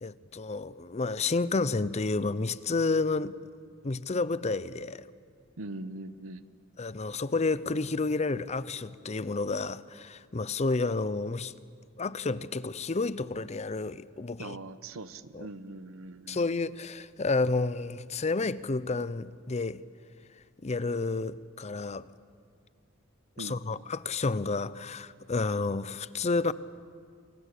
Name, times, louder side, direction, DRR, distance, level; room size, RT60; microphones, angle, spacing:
voice 1, 0.0-3.4 3.8-5.0 6.8-11.5 12.0-14.6 15.3-15.4 16.3-19.8 20.6-22.1 23.4-26.5, left 3 dB, 35° left, 0.6 m, -30 dB
voice 2, 5.6-6.5 14.4-16.4 23.4-23.9, right 2 dB, 85° right, 1.0 m, -42 dB
28.5 x 23.5 x 8.4 m
head